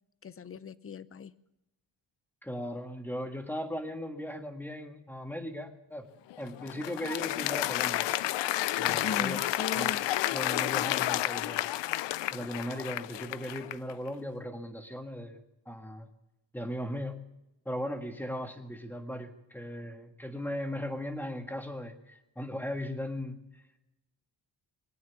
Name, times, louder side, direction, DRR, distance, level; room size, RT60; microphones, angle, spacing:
voice 1, 0.2-1.4 9.0-10.0, left 6 dB, 30° left, 17 dB, 0.6 m, -38 dB
voice 2, 2.4-6.1 6.4-8.1 8.8-9.4 9.7-9.9 10.3-11.7 12.3-16.1 16.5-17.2 17.6-23.6, equal, 5° left, 6 dB, 1.6 m, -38 dB
Applause, 6.3-13.9, left 15 dB, 80° left, 0.5 m, -31 dB
22.0 x 9.4 x 7.0 m, 0.95 s
cardioid pair, 120°, 42 cm